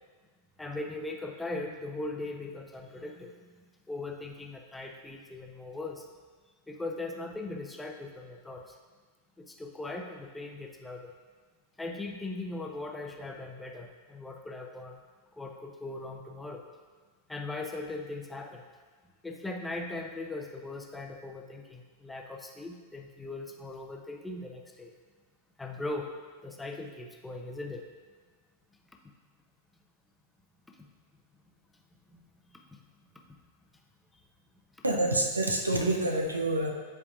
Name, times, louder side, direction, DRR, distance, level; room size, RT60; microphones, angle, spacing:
voice 1, 0.6-6.1 6.7-8.8 9.4-11.1 11.8-15.0 15.3-16.6 17.3-18.6 19.2-24.9 25.6-26.1 26.4-27.9 30.8-30.9 32.1-32.8 33.1-33.4, left 2 dB, 10° left, 2 dB, 0.6 m, -39 dB
voice 2, 34.8-36.7, right 1 dB, 80° right, 2 dB, 0.7 m, -27 dB
9.6 x 4.7 x 2.5 m, 1.5 s
figure-of-eight pair, 90°, 0 cm